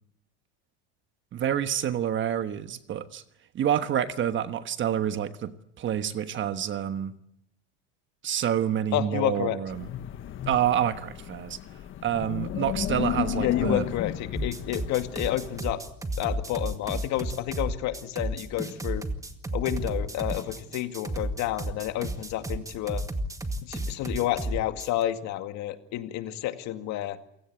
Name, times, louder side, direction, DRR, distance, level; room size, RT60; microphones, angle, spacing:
voice 1, 1.3-3.2 3.5-7.1 8.2-9.9 10.5-11.6 12.0-13.8, right 10 dB, 35° right, 1.3 m, -28 dB
voice 2, 8.9-9.6 13.4-15.8 16.2-19.1 19.5-23.0 23.6-27.2, left 13 dB, 55° left, 2.2 m, -30 dB
Wind, 9.7-15.6, left 9 dB, 35° left, 1.4 m, -33 dB
sound 1, 14.3-25.0, right 1 dB, 10° right, 2.0 m, -32 dB
28.0 x 17.0 x 8.5 m
supercardioid pair, 120°, 34 cm